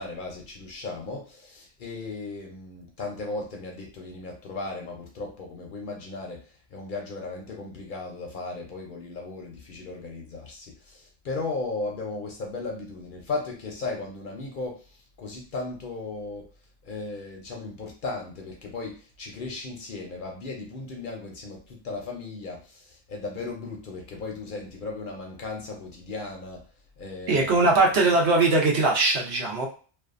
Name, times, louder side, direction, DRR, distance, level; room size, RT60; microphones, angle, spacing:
voice 1, 0.0-6.5 6.7-14.8 15.2-16.5 16.8-26.6 27.0-27.5, left 3 dB, 55° left, 0 dB, 0.7 m, -36 dB
voice 2, 27.3-29.7, right 3 dB, 70° right, -1 dB, 1.0 m, -21 dB
2.5 x 2.2 x 2.4 m, 0.39 s
omnidirectional pair, 1.1 m